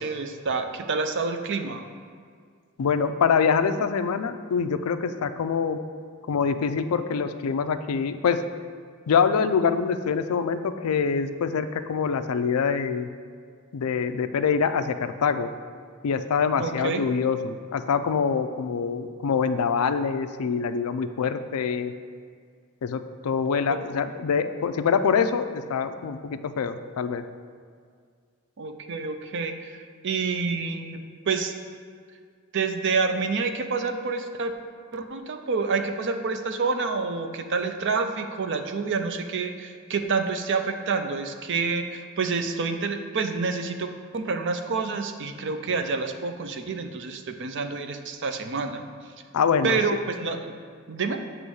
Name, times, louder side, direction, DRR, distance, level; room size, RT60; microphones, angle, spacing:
voice 1, 0.0-1.9 16.6-17.0 23.7-23.8 28.6-31.5 32.5-34.5 34.9-48.8 49.6-50.5 50.9-51.2, right 4 dB, 55° right, 7 dB, 0.5 m, -28 dB
voice 2, 2.8-5.8 6.2-8.4 9.1-13.1 13.7-15.5 16.0-21.9 22.8-27.2 49.3-49.8, left 6 dB, 80° left, 10 dB, 0.4 m, -25 dB
7.9 x 3.1 x 6.2 m, 2.1 s
head